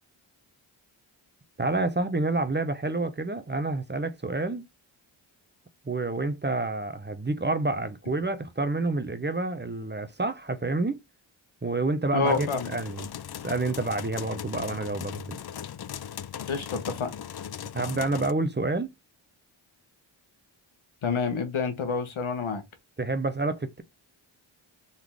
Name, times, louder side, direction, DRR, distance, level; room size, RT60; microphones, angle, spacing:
voice 1, 1.6-4.7 5.8-11.0 11.6-12.5 12.7-13.0 13.4-15.4 17.7-18.9 23.0-23.8, right 2 dB, 20° right, 0.9 m, -28 dB
voice 2, 12.1-12.7 16.5-17.1 21.0-22.6, left 4 dB, 80° left, 1.4 m, -28 dB
sound 1, 12.3-18.3, left 9 dB, 50° left, 0.6 m, -38 dB
4.1 x 2.9 x 3.5 m
cardioid pair, 40°, 48 cm